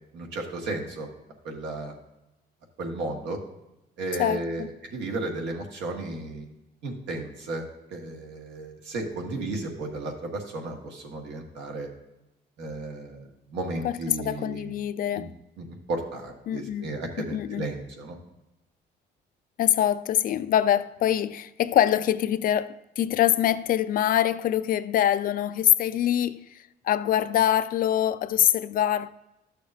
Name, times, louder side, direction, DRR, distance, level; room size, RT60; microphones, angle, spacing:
voice 1, 0.1-1.1 1.4-1.9 2.8-3.4 4.0-6.5 6.8-7.6 7.9-11.9 12.6-13.2 13.5-14.8 15.1-15.3 15.6-18.2, right 2 dB, 80° right, 1.6 m, -34 dB
voice 2, 4.2-4.7 13.8-15.3 16.5-16.9 17.2-17.7 19.6-26.4 26.8-29.1, left 11 dB, 55° left, 0.4 m, -24 dB
12.5 x 6.7 x 2.6 m
cardioid pair, 120°, 18 cm